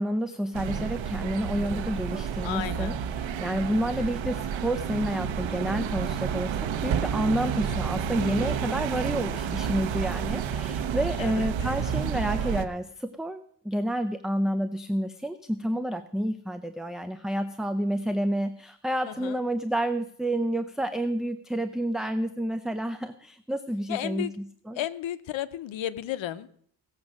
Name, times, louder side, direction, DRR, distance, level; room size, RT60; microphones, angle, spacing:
voice 1, 0.0-6.6 6.8-24.3 24.7-24.8, right 1 dB, ahead, 8 dB, 0.5 m, -29 dB
sound 1, 0.5-12.6, right 8 dB, 90° right, 1.0 m, -30 dB
voice 2, 2.4-2.9 7.3-7.5 11.2-11.8 19.1-19.4 23.9-24.3 24.7-26.6, left 12 dB, 90° left, 15 dB, 0.9 m, -34 dB
17.0 x 7.3 x 6.3 m, 0.63 s
wide cardioid pair, 140°, 45 cm